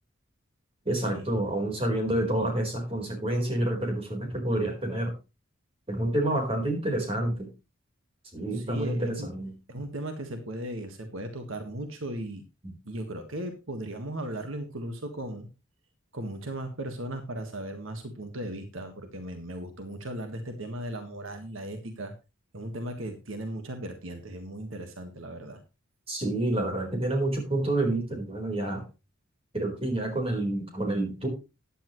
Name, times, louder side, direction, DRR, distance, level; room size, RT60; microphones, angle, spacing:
voice 1, 0.9-5.1 5.9-7.5 8.3-9.5 26.1-28.8 29.5-31.3, right 1 dB, 25° right, 2 dB, 4.2 m, -28 dB
voice 2, 8.5-9.3 9.7-12.4 12.8-15.5 16.1-22.1 22.5-25.6, right 1 dB, 70° right, 6 dB, 1.6 m, -37 dB
14.0 x 10.0 x 3.1 m, 0.28 s
head